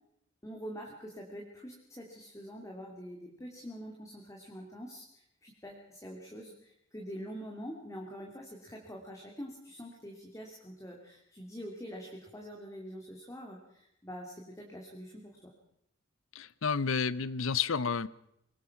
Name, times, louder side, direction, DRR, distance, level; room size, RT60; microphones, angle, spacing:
voice 1, 0.4-15.5, equal, 15° left, 0 dB, 2.4 m, -45 dB
voice 2, 16.3-18.1, left 6 dB, 80° left, 19 dB, 0.8 m, -30 dB
23.0 x 20.0 x 5.9 m, 0.78 s
head